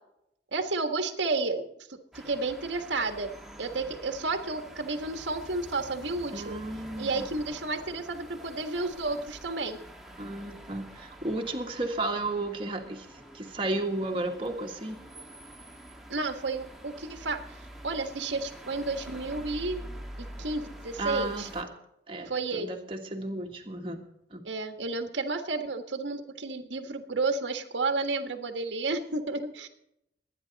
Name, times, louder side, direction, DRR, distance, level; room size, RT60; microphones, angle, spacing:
voice 1, 0.5-3.3 3.6-6.6 7.0-9.8 16.1-17.4 17.8-19.8 20.2-21.5 22.3-22.7 24.4-29.7, right 3 dB, 90° right, 6 dB, 1.5 m, -31 dB
sound 1, 2.1-21.6, right 1 dB, ahead, 1.6 m, -46 dB
voice 2, 6.3-7.3 10.2-15.0 21.0-21.7 22.1-24.0 24.3-24.4, right 2 dB, 30° right, 1 dB, 1.6 m, -33 dB
22.5 x 9.8 x 4.1 m, 0.79 s
head